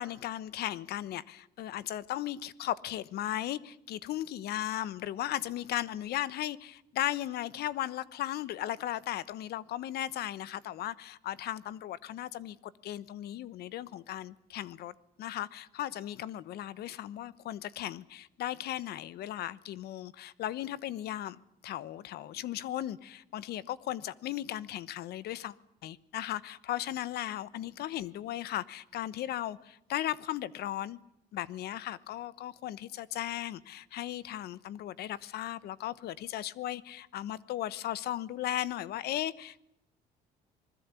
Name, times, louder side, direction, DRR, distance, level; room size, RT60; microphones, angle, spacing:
voice 1, 0.0-14.9 15.2-25.5 25.8-31.0 31.3-39.6, left 13 dB, 70° left, 1.1 m, -36 dB
26.0 x 20.5 x 8.4 m
cardioid pair, 110°, 17 cm